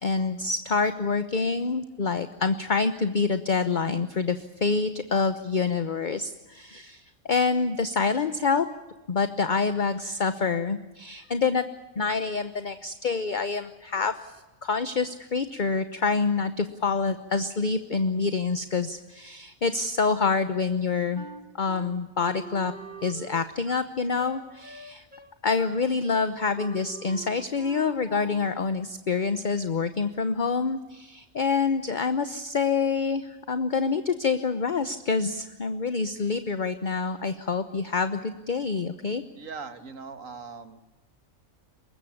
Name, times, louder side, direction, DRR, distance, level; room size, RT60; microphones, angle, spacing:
voice 1, 0.0-8.7 9.1-11.6 12.0-14.3 14.6-21.2 21.6-22.7 23.0-25.0 25.4-39.2, left 4 dB, 40° left, 10 dB, 1.1 m, -27 dB
Wind instrument woodwind instrument, 21.1-28.6, right 3 dB, 35° right, 1.9 m, -44 dB
voice 2, 39.4-40.8, right 5 dB, 75° right, 10 dB, 2.1 m, -40 dB
24.0 x 21.0 x 8.5 m, 1.1 s
omnidirectional pair, 1.4 m